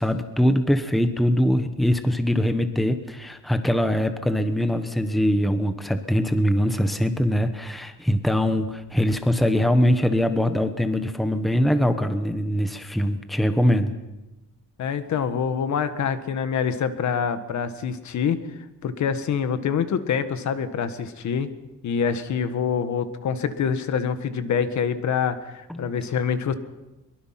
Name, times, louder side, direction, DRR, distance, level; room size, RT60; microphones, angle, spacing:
voice 1, 0.0-13.9 25.7-25.9, equal, ahead, 8 dB, 1.2 m, -22 dB
voice 2, 14.8-18.4 18.8-21.5 21.8-26.5, left 7 dB, 60° left, 10 dB, 1.6 m, -25 dB
23.5 x 23.0 x 5.9 m, 1.0 s
cardioid pair, 160°, 33 cm